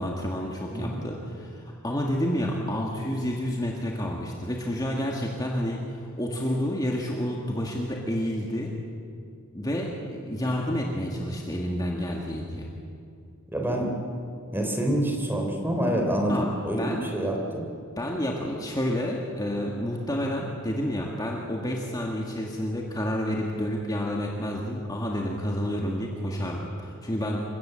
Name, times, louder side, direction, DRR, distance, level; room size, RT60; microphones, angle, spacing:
voice 1, 0.0-8.7 9.5-12.7 16.3-16.5 16.8-17.1 18.0-27.4, equal, 15° left, -1 dB, 1.8 m, -29 dB
voice 2, 0.7-1.0 13.5-13.9 14.5-17.7, right 1 dB, 10° right, 1 dB, 3.3 m, -27 dB
28.0 x 16.0 x 7.7 m, 2.5 s
head